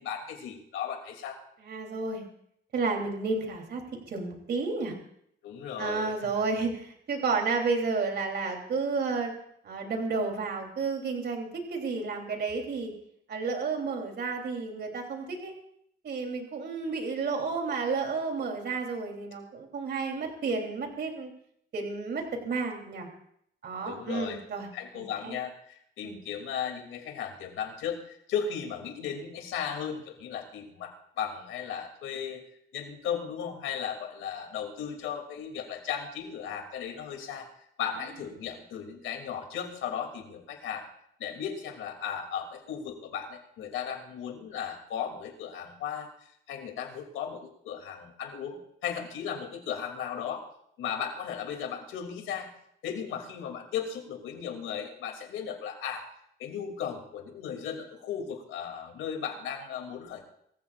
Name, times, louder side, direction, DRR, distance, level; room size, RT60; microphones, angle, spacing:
voice 1, 0.0-1.4 5.4-6.1 23.8-24.4 24.7-32.4 32.7-37.5 37.8-40.9 41.2-46.1 46.5-50.4 50.8-52.5 52.8-56.1 56.4-60.2, left 8 dB, 90° left, 3 dB, 2.9 m, -36 dB
voice 2, 1.6-2.2 2.7-4.9 5.8-9.3 9.6-12.9 13.3-15.5 16.0-21.3 21.7-23.1 23.6-24.7 24.9-25.4 26.0-26.2, right 4 dB, 60° right, 2 dB, 3.5 m, -31 dB
24.0 x 15.5 x 2.5 m, 0.70 s
cardioid pair, 90°, 20 cm